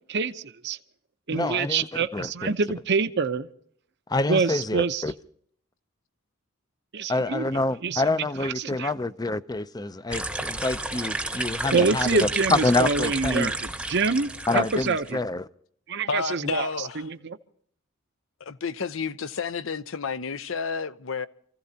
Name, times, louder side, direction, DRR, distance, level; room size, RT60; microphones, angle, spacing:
voice 1, 0.1-0.8 1.3-3.5 4.3-5.0 6.9-7.5 7.8-8.9 11.7-15.2 15.9-17.4, right 4 dB, 55° right, 0.8 m, -26 dB
voice 2, 1.3-1.9 2.1-2.5 4.1-5.1 7.1-13.5 14.5-15.5, left 2 dB, 20° left, 0.5 m, -27 dB
sound 1, 10.1-15.1, right 2 dB, 5° right, 1.0 m, -31 dB
voice 3, 16.1-17.0 18.4-21.3, left 5 dB, 65° left, 0.7 m, -31 dB
28.5 x 15.5 x 2.8 m
head